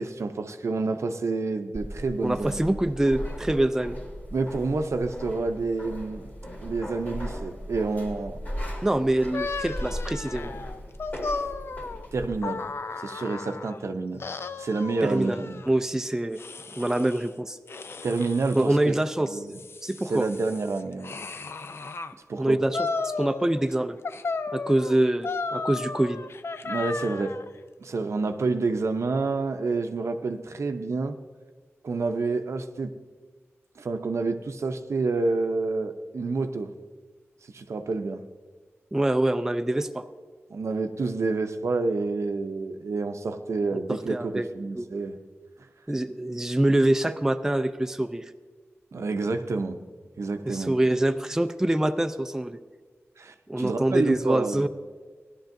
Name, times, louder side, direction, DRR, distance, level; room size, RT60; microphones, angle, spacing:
voice 1, 0.0-2.7 4.3-6.3 6.6-8.4 12.1-12.7 13.0-14.3 14.6-15.6 18.0-19.5 20.1-21.2 22.3-22.6 26.6-27.4 27.8-31.2 31.8-32.9 33.8-36.7 37.5-38.2 40.5-45.2 48.9-49.8 50.2-50.7 53.2-54.7, right 3 dB, 70° right, 7 dB, 0.6 m, -28 dB
sound 1, 1.7-12.4, equal, 35° left, 2.5 m, -37 dB
voice 2, 2.2-4.0 8.8-10.5 15.0-15.4 15.7-16.4 16.8-17.6 18.6-19.3 19.8-20.3 22.4-24.0 24.5-26.2 38.9-40.0 43.7-44.5 44.7-44.9 45.9-48.3 50.5-52.6 53.5-54.7, right 1 dB, 10° right, 8 dB, 0.4 m, -25 dB
sound 2, 9.3-13.8 14.2-15.7 16.4-17.3 17.7-18.7 19.3-22.1 22.7-23.7 24.0-27.5, left 4 dB, 55° left, 0.4 m, -34 dB
16.0 x 11.0 x 2.6 m, 1.4 s
wide cardioid pair, 90°, 5 cm